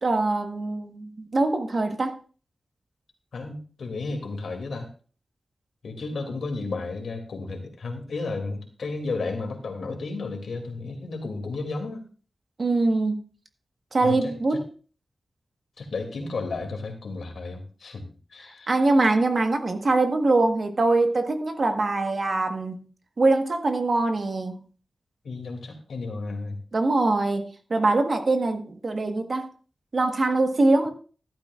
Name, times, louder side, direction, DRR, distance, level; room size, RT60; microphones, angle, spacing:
voice 1, 0.0-2.1 12.6-13.2 13.9-14.7 18.7-22.8 23.2-24.6 26.7-29.5 29.9-30.9, right 2 dB, 45° right, 6 dB, 1.3 m, -23 dB
voice 2, 3.3-4.9 5.8-12.0 14.0-14.6 15.8-18.0 18.3-18.8 25.2-26.6, left 3 dB, 90° left, 3 dB, 2.5 m, -33 dB
14.0 x 12.0 x 2.4 m, 0.40 s
wide cardioid pair, 130°, 0 cm